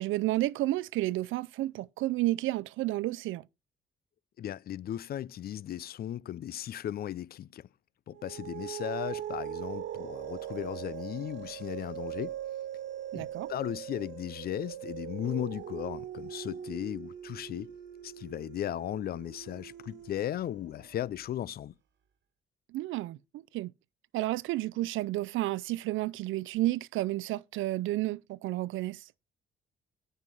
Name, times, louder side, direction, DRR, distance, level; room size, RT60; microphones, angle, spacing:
voice 1, 0.0-3.5 13.1-13.5 22.7-23.7 24.1-29.0, right 17 dB, 80° right, 0.4 m, -31 dB
voice 2, 4.4-7.7 8.1-12.3 13.1-17.7 18.0-21.7, left 11 dB, 50° left, 0.4 m, -36 dB
sound 1, 8.2-21.0, right 10 dB, 65° right, 1.5 m, -41 dB
9.7 x 5.5 x 4.7 m
cardioid pair, 90°, 20 cm